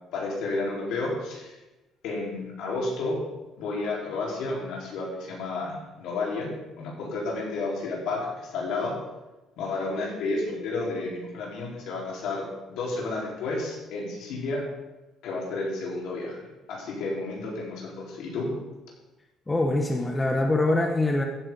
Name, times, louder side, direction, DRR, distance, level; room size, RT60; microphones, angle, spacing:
voice 1, 0.1-1.5 2.0-3.2 3.6-8.9 9.6-14.6 15.2-16.4 16.7-18.5, left 3 dB, 75° left, -3 dB, 4.3 m, -31 dB
voice 2, 19.5-21.2, left 2 dB, 15° left, 2 dB, 0.9 m, -24 dB
14.5 x 8.8 x 3.9 m, 1.1 s
cardioid pair, 145°, 0 cm